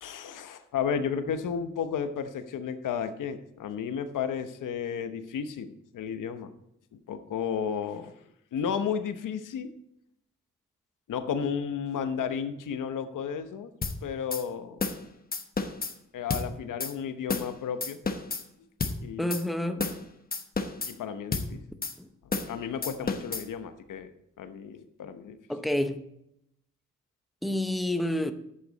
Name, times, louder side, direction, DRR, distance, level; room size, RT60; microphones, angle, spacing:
voice 1, 0.0-6.5 7.1-8.1 8.5-9.7 11.1-13.7 14.0-14.8 16.1-18.0 19.0-19.3 20.9-21.6 22.5-24.1 24.4-25.4, left 7 dB, 90° left, 1.0 m, -33 dB
sound 1, 13.8-14.0 14.3-14.4 14.8-15.0 15.3-15.9 16.3-16.5 16.8-16.9 17.3-17.5 17.8-18.4 18.8-19.0 19.3-19.4 19.8-20.0 20.3-20.9 21.3-21.5 21.8-21.9 22.3-22.5 22.8-23.4, left 4 dB, 30° left, 1.1 m, -31 dB
voice 2, 19.2-19.9 22.0-22.1 25.5-26.0 27.4-28.3, left 1 dB, ahead, 0.8 m, -28 dB
11.5 x 8.4 x 4.0 m
cardioid pair, 90°, 31 cm